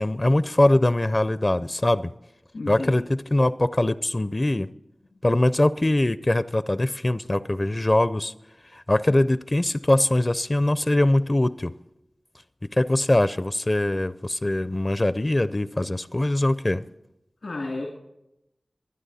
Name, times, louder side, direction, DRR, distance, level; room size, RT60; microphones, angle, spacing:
voice 1, 0.0-2.1 2.7-4.7 5.2-8.3 8.7-11.7 12.7-16.8, left 1 dB, 35° left, 14 dB, 0.5 m, -22 dB
voice 2, 2.5-3.0 17.4-17.9, left 2 dB, 90° left, -2 dB, 2.2 m, -32 dB
24.0 x 9.7 x 4.1 m, 0.87 s
wide cardioid pair, 40°, 0 cm